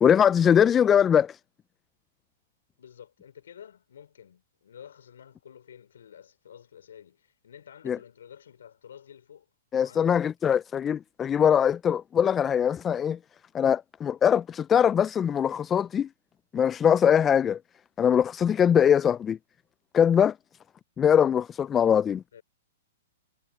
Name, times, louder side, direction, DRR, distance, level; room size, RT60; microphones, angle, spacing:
voice 1, 0.0-1.4 7.9-8.0 9.7-13.2 13.5-16.1 16.5-17.6 18.0-19.4 19.9-20.3 21.0-22.2, left 8 dB, 20° left, 0.4 m, -22 dB
voice 2, 2.8-9.5 9.8-10.2 22.3-22.4, left 8 dB, 75° left, 4.2 m, -50 dB
hypercardioid pair, 120°, 0 cm